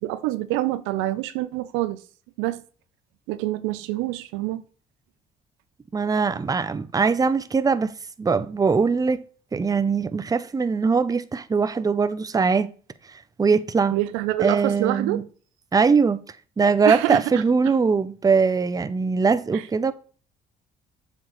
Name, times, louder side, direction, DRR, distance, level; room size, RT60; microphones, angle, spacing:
voice 1, 0.0-2.0 2.4-2.6 3.3-4.6 13.9-15.2 16.8-17.4 19.5-19.6, right 16 dB, 90° right, 0.5 m, -26 dB
voice 2, 5.9-7.9 8.2-9.2 9.5-12.7 13.4-14.0 14.4-15.2 15.7-16.2 16.6-19.9, right 5 dB, 20° right, 0.5 m, -21 dB
7.4 x 5.1 x 3.1 m
supercardioid pair, 75°, 20 cm